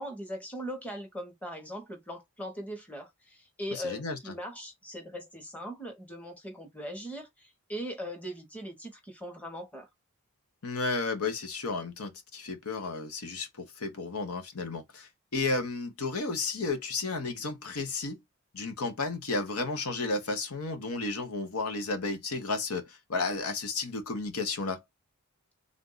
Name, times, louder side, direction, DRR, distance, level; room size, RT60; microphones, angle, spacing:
voice 1, 0.0-9.9, equal, 5° left, 1.1 m, -40 dB
voice 2, 3.7-4.3 10.6-18.2 18.5-24.8, left 3 dB, 75° left, 1.0 m, -33 dB
3.6 x 2.6 x 3.8 m
head